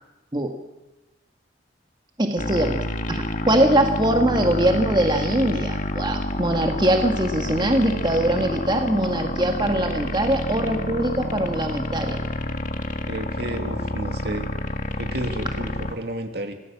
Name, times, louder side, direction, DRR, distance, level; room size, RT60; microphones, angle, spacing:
voice 1, 2.2-12.2, right 1 dB, 25° right, 4 dB, 1.8 m, -22 dB
sound 1, 2.4-15.9, left 1 dB, 45° left, 1.8 m, -28 dB
voice 2, 13.1-14.5 15.0-16.5, right 1 dB, 60° right, 6 dB, 2.5 m, -31 dB
26.0 x 18.5 x 7.4 m, 1.0 s
head